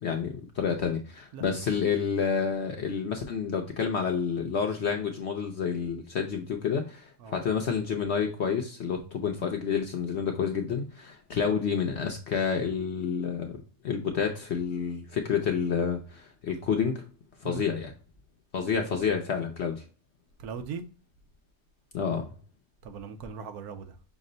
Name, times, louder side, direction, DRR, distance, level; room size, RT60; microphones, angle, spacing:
voice 1, 0.0-13.6 13.8-17.1 17.4-17.9 18.5-19.8 21.9-22.3, left 6 dB, 60° left, 0.7 m, -29 dB
voice 2, 20.4-20.8 22.8-24.0, right 6 dB, 75° right, 1.2 m, -39 dB
6.0 x 2.1 x 3.7 m
omnidirectional pair, 1.7 m